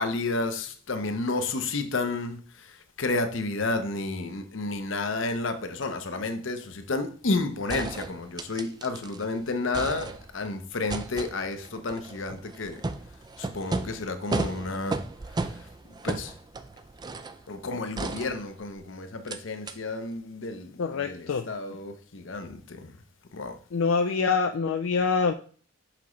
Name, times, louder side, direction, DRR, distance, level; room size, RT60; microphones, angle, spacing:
voice 1, 0.0-12.8 13.4-15.0 15.4-15.7 16.0-16.3 17.5-23.0 23.3-23.6, left 3 dB, 65° left, 8 dB, 0.8 m, -31 dB
sound 1, 7.2-7.3 7.7-9.2 9.5-10.5 10.9-17.4 18.0-18.8 19.3-19.4 19.7-19.8, right 3 dB, 20° right, 0.3 m, -35 dB
voice 2, 20.8-21.5 23.7-25.3, left 5 dB, 85° left, 6 dB, 0.4 m, -25 dB
5.9 x 5.8 x 3.1 m, 0.43 s
head